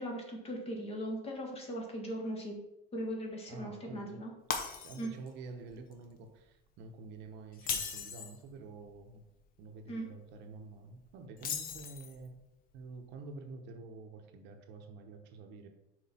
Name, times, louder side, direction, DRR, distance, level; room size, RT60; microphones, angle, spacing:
voice 1, 0.0-2.6 2.9-4.3 4.9-5.1 9.9-10.1, equal, 30° left, 1 dB, 1.6 m, -39 dB
voice 2, 3.5-4.2 4.8-9.2 9.6-12.4 12.7-15.7, right 3 dB, 60° right, 5 dB, 1.0 m, -48 dB
Shatter, 4.5-5.3 5.7-5.9 7.5-8.4 11.4-12.3, left 6 dB, 45° left, 1.0 m, -37 dB
6.2 x 4.6 x 4.3 m, 0.89 s
cardioid pair, 145°, 20 cm